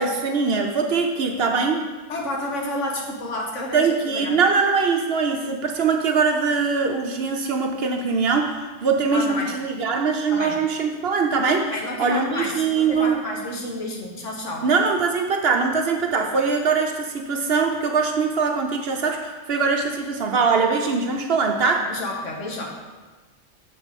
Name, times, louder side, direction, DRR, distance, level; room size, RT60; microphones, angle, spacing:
voice 1, 0.0-1.8 3.7-11.7 12.0-13.2 14.6-21.9, right 5 dB, 60° right, 3 dB, 0.8 m, -22 dB
voice 2, 2.1-4.4 9.1-9.5 10.3-10.6 11.6-14.7 21.9-22.7, left 1 dB, 70° left, -1 dB, 1.6 m, -30 dB
7.2 x 5.1 x 5.2 m, 1.3 s
omnidirectional pair, 1.3 m